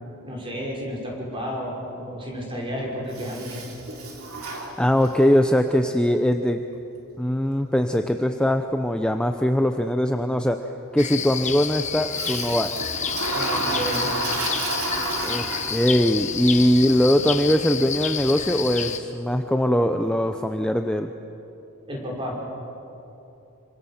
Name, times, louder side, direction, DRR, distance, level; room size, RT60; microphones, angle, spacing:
voice 1, 0.2-3.6 13.3-14.1 21.9-22.3, equal, 25° right, -2 dB, 5.6 m, -31 dB
Toilet flush, 3.1-5.4 12.1-16.3, right 3 dB, 80° right, 3.5 m, -30 dB
voice 2, 4.4-6.6 7.2-10.6 10.9-12.7 15.2-21.1, equal, 5° left, 6 dB, 0.7 m, -21 dB
sound 1, 11.0-19.0, left 7 dB, 35° left, 1.1 m, -29 dB
26.5 x 25.0 x 7.3 m, 2.9 s
head